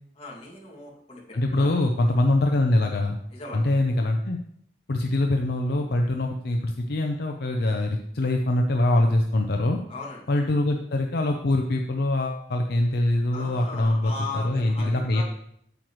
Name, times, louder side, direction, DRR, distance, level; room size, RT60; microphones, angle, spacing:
voice 1, 0.2-1.2 1.5-1.8 3.3-3.6 9.9-10.2 13.3-15.2, left 3 dB, 35° left, -3 dB, 2.1 m, -38 dB
voice 2, 1.3-3.2 3.5-4.4 4.9-9.8 10.3-15.2, left 1 dB, 60° left, 3 dB, 0.6 m, -23 dB
8.8 x 7.7 x 3.1 m, 0.70 s
head